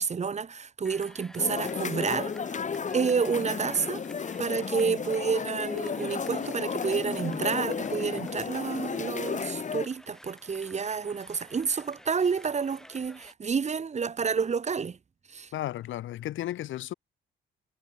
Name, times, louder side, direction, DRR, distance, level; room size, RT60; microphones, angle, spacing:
voice 1, 0.0-2.6 2.9-4.0 4.4-15.0 15.3-15.5, right 6 dB, 35° right, 1.2 m, -29 dB
sound 1, 0.8-13.3, equal, 5° left, 4.8 m, -51 dB
sound 2, 1.4-9.9, left 6 dB, 40° left, 2.1 m, -33 dB
voice 2, 15.5-16.9, left 13 dB, 75° left, 1.3 m, -34 dB
cardioid pair, 90°, 20 cm